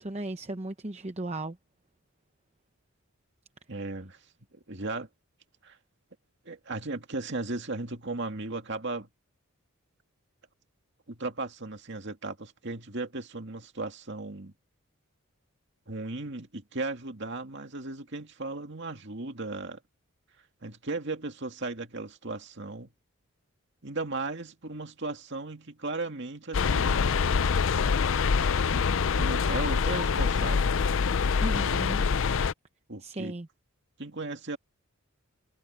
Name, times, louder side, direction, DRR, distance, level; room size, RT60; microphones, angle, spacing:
voice 1, 0.0-1.6 31.4-32.0 33.0-33.5, right 2 dB, 30° right, 0.8 m, -36 dB
voice 2, 3.7-4.2 4.5-5.1 5.6-5.8 6.4-9.1 11.1-14.5 15.9-19.8 20.6-22.9 23.8-27.6 28.7-28.9 29.1-30.8 32.9-33.3 34.0-34.6, right 2 dB, 50° right, 2.3 m, -36 dB
sound 1, 26.5-32.5, left 5 dB, 60° left, 0.5 m, -25 dB
head